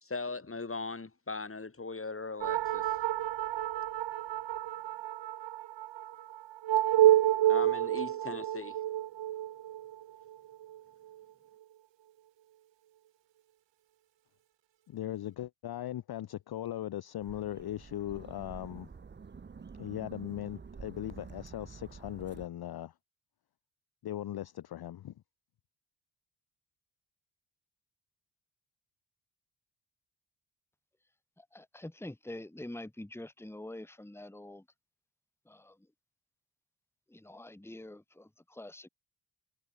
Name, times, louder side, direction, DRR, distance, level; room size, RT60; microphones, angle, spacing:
voice 1, 0.0-3.0 7.4-8.8, left 3 dB, 25° left, 2.9 m, -39 dB
sound 1, 2.4-11.2, right 13 dB, 60° right, 0.9 m, -29 dB
voice 2, 14.9-18.9 19.8-22.9 24.0-25.1, left 12 dB, 50° left, 0.7 m, -39 dB
sound 2, 17.2-22.4, right 5 dB, 20° right, 0.7 m, -49 dB
voice 3, 31.4-34.6 35.4-35.9 37.1-38.9, left 1 dB, 5° left, 1.8 m, -46 dB
supercardioid pair, 60°, 50 cm